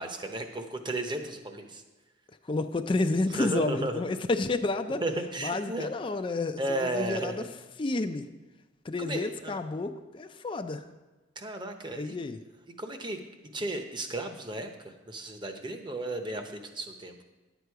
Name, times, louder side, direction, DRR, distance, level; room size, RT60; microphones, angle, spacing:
voice 1, 0.0-1.8 3.4-4.0 5.0-5.9 6.6-7.4 9.0-9.6 11.4-12.2 12.8-13.2 13.5-17.2, right 2 dB, 25° right, 6 dB, 0.8 m, -34 dB
voice 2, 2.5-5.0 5.4-7.5 7.8-8.3 8.9-10.8 11.9-12.4, left 2 dB, 25° left, 8 dB, 0.4 m, -30 dB
11.0 x 8.1 x 4.7 m, 1.2 s
head